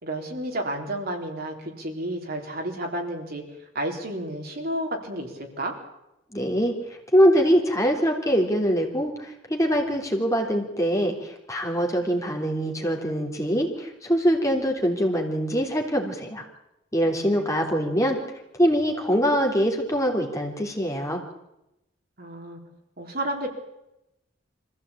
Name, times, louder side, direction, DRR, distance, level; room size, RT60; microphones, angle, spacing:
voice 1, 0.0-3.4 3.7-5.7 17.3-17.5 22.2-22.6 23.0-23.5, right 1 dB, 50° right, 2 dB, 4.0 m, -31 dB
voice 2, 6.3-6.7 7.1-16.4 16.9-18.2 18.6-21.2, equal, 15° left, 1 dB, 3.5 m, -23 dB
25.0 x 15.5 x 8.7 m, 0.89 s
head